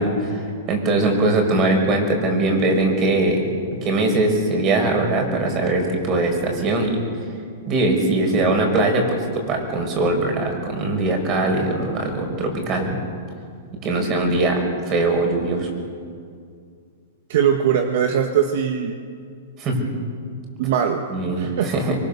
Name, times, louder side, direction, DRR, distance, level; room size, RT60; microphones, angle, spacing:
voice 1, 0.0-3.5 3.8-7.0 7.7-13.1 13.8-15.7 19.6-19.9 21.1-22.0, right 2 dB, 30° right, 3 dB, 5.9 m, -21 dB
voice 2, 17.3-19.0 20.6-21.0 21.4-21.7, right 8 dB, 60° right, 4 dB, 1.8 m, -20 dB
25.0 x 23.5 x 7.1 m, 2.2 s
hypercardioid pair, 145°, 0 cm